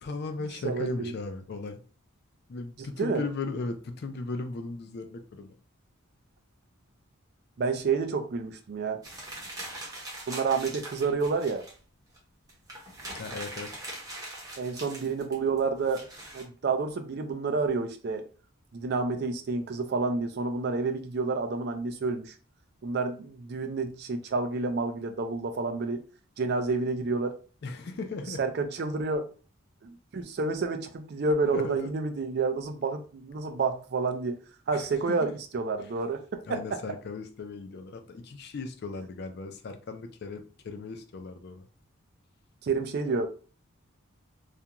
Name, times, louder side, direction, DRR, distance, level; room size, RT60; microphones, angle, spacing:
voice 1, 0.0-1.8 2.5-5.5 13.1-13.7 27.6-28.4 31.5-31.9 34.7-35.3 35.8-35.9 36.4-41.7, left 3 dB, 50° left, 0.4 m, -37 dB
voice 2, 0.6-1.1 3.0-3.2 7.6-9.0 10.3-11.6 14.6-16.1 16.3-18.3 18.7-22.3 22.8-26.0 26.4-27.4 28.4-29.3 29.8-34.4 34.7-36.8 42.6-43.3, right 4 dB, 50° right, 0.4 m, -29 dB
sound 1, 9.0-11.7 12.2-12.3 12.5-16.4, right 1 dB, 15° right, 0.7 m, -41 dB
2.5 x 2.2 x 2.8 m
head